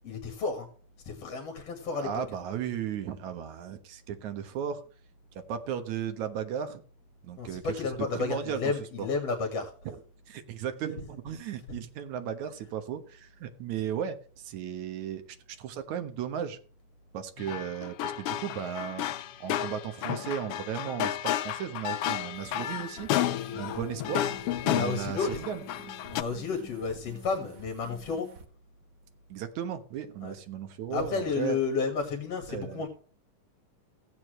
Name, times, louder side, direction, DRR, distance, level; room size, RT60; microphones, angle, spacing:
voice 1, 0.0-0.7 1.1-2.2 7.4-9.7 23.7-23.9 24.6-25.4 26.1-28.3 30.2-30.3 30.9-32.9, left 4 dB, 55° left, 4 dB, 2.7 m, -32 dB
voice 2, 1.9-4.8 5.3-6.8 7.2-9.1 9.8-10.0 10.3-16.6 17.1-19.0 19.4-23.1 23.5-24.3 24.6-25.6 29.3-31.6 32.5-32.8, right 8 dB, 70° right, 9 dB, 2.6 m, -35 dB
sound 1, 17.4-26.2, left 12 dB, 80° left, 1.3 m, -32 dB
sound 2, 22.3-28.5, right 5 dB, 40° right, 1.2 m, -50 dB
16.0 x 8.5 x 3.2 m, 0.42 s
omnidirectional pair, 3.5 m